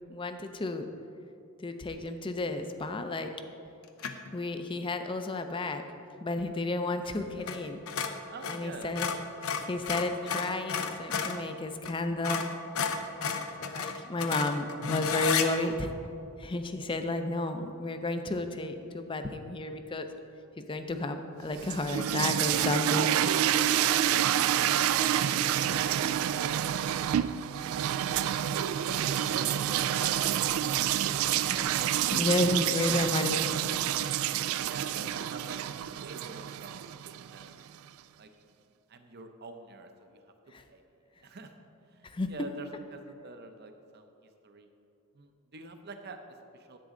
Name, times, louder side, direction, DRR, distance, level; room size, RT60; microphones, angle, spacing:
voice 1, 0.1-0.9 1.6-3.3 4.3-5.8 6.2-7.8 8.5-9.1 9.7-12.5 13.6-16.0 16.4-20.1 20.6-23.1 32.1-33.4 40.5-40.6 42.0-42.3, left 2 dB, 25° left, 7 dB, 0.5 m, -32 dB
sound 1, 4.0-4.3 7.4-7.6 7.9-11.4 11.8-12.0 12.2-15.5, left 6 dB, 85° left, 0.7 m, -32 dB
voice 2, 8.3-9.0 24.4-26.4 26.7-26.9 28.9-32.1 32.3-32.5 34.3-37.5 38.2-38.3 38.9-40.2 40.7-40.8 41.2-41.5 41.9-44.1 44.4-44.7 45.1-46.8, right 3 dB, 50° right, 6 dB, 0.7 m, -46 dB
sound 2, 21.5-37.5, right 11 dB, 80° right, 0.3 m, -28 dB
10.5 x 8.3 x 3.8 m, 2.6 s
head